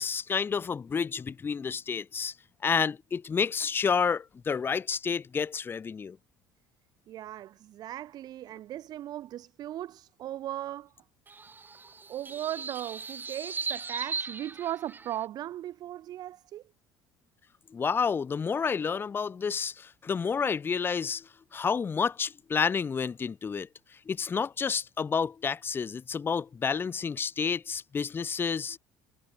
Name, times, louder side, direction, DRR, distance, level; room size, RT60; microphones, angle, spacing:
voice 1, 0.0-2.3 2.6-6.2 17.7-23.7 24.1-28.8, left 6 dB, 30° left, 0.8 m, -30 dB
voice 2, 7.1-10.9 12.1-16.6, right 12 dB, 60° right, 6.9 m, -37 dB
sound 1, 11.3-15.3, right 4 dB, 25° right, 6.4 m, -38 dB
supercardioid pair, 85°, 8 cm